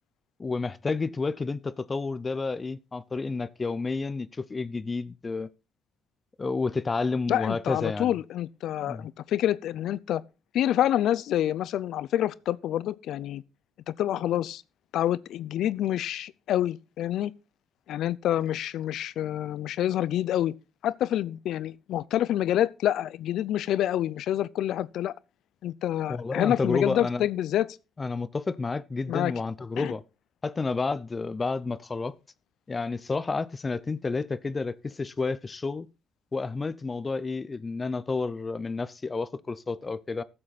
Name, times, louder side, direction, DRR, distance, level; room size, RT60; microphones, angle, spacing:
voice 1, 0.4-5.5 6.4-8.2 8.8-9.1 26.1-27.3 28.0-30.0 30.4-32.1 32.7-35.9 36.3-40.2, left 4 dB, 30° left, 0.6 m, -30 dB
voice 2, 7.3-10.2 10.5-13.4 13.9-14.6 14.9-17.3 17.9-20.5 20.8-25.1 25.6-27.7 29.1-29.3 29.8-29.9, left 12 dB, 80° left, 0.5 m, -27 dB
14.0 x 7.7 x 4.1 m
cardioid pair, 90°, 0 cm